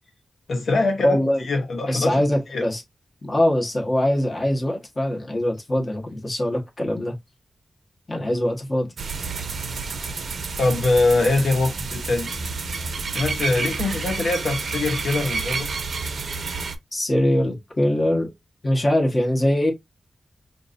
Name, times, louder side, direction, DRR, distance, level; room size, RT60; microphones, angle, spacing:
voice 1, 0.5-2.6 10.6-12.3 13.1-15.7, left 3 dB, 85° left, 1.0 m, -23 dB
voice 2, 1.0-1.4 1.9-2.8 3.2-7.1 8.1-8.9 16.9-18.3 18.6-19.7, left 1 dB, 30° left, 1.5 m, -22 dB
sound 1, 9.0-16.8, right 4 dB, 75° right, 0.8 m, -29 dB
5.2 x 2.7 x 2.6 m
wide cardioid pair, 90°, 0 cm